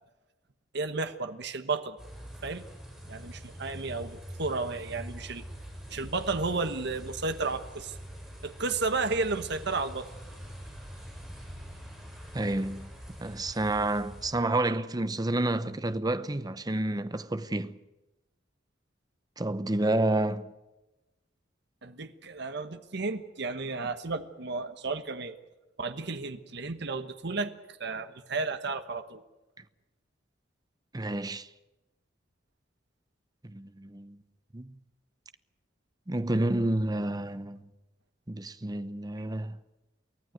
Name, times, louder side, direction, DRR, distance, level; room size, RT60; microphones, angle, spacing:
voice 1, 0.7-2.0 2.4-2.7 3.1-5.5 5.9-7.9 8.4-10.1 21.8-25.3 25.8-27.5 27.8-29.2, right 3 dB, 65° right, 1.2 m, -33 dB
sound 1, 2.0-14.3, equal, 5° right, 7.8 m, -44 dB
voice 2, 12.3-12.9 13.2-17.8 19.4-20.5 30.9-31.5 33.4-34.2 34.5-34.7 36.1-37.7 38.3-39.6, right 2 dB, 20° right, 0.8 m, -29 dB
24.0 x 16.0 x 9.3 m
head